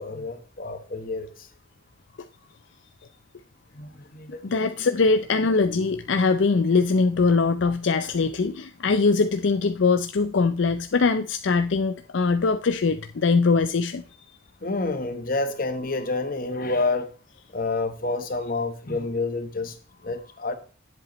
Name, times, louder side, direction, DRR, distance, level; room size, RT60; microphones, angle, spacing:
voice 1, 0.0-1.5 3.7-4.9 14.6-17.1 17.5-19.8 20.0-20.6, left 3 dB, 45° left, 1.1 m, -29 dB
voice 2, 4.4-14.0, left 4 dB, 65° left, 0.5 m, -22 dB
10.5 x 7.7 x 3.0 m
head